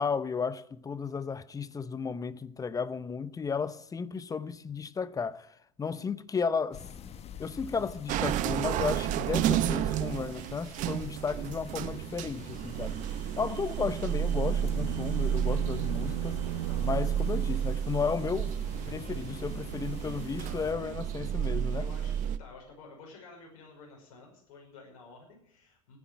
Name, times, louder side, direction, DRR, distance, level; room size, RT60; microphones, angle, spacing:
voice 1, 0.0-6.8 7.4-13.0 13.4-16.4 16.8-18.6 18.9-21.9, left 5 dB, 20° left, 0.8 m, -34 dB
sound 1, 6.7-20.7, left 8 dB, 35° left, 1.3 m, -47 dB
sound 2, 8.1-22.4, right 10 dB, 45° right, 1.0 m, -31 dB
sound 3, 13.8-18.2, right 12 dB, 85° right, 0.6 m, -38 dB
voice 2, 19.9-20.8 21.8-22.1 22.4-26.0, left 3 dB, 60° left, 5.6 m, -52 dB
15.0 x 9.8 x 8.9 m
hypercardioid pair, 80°, 18 cm